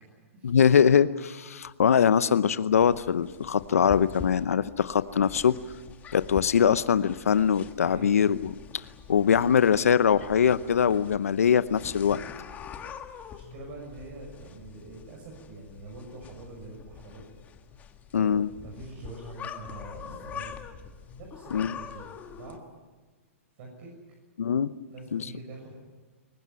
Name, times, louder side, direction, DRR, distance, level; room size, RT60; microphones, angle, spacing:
voice 1, 0.4-5.6 6.1-12.2 18.1-18.5 21.5-21.8 24.4-24.7 25.1-25.3, left 7 dB, 85° left, 15 dB, 0.8 m, -23 dB
sound 1, 2.7-22.6, left 7 dB, 20° left, 1.7 m, -45 dB
voice 2, 7.8-8.2 13.3-17.2 18.1-20.5 21.2-22.6 23.6-23.9 24.9-25.7, right 2 dB, 50° right, -2 dB, 7.0 m, -44 dB
22.5 x 19.5 x 9.5 m, 1.3 s
hypercardioid pair, 135°, 8 cm